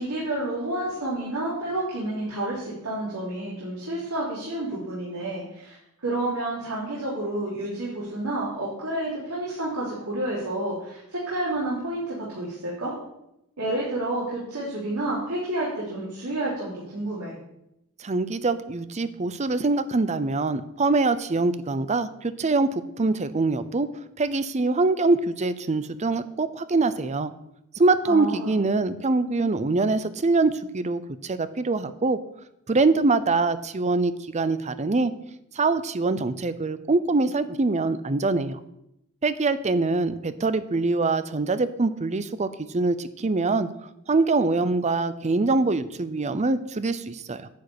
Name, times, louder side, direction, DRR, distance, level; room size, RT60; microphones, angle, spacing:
voice 1, 0.0-5.7 6.0-12.9 13.6-17.3 28.1-28.5, right 1 dB, 90° right, -7 dB, 3.5 m, -30 dB
voice 2, 18.0-23.9 24.2-27.3 27.8-32.2 32.7-35.1 35.5-38.6 39.2-43.7 44.1-47.5, right 3 dB, 30° right, 13 dB, 0.6 m, -24 dB
10.5 x 5.1 x 8.3 m, 0.82 s
head